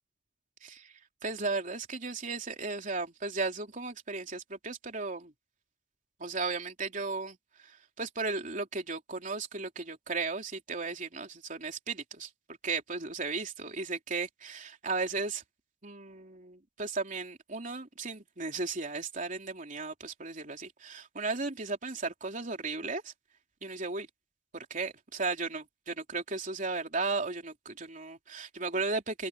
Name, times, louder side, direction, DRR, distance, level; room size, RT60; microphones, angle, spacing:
voice 1, 1.2-5.3 6.2-7.4 8.0-12.3 12.6-15.4 15.8-23.1 23.6-24.1 24.5-29.3, right 3 dB, 45° right, 3.3 m, -35 dB
open air
head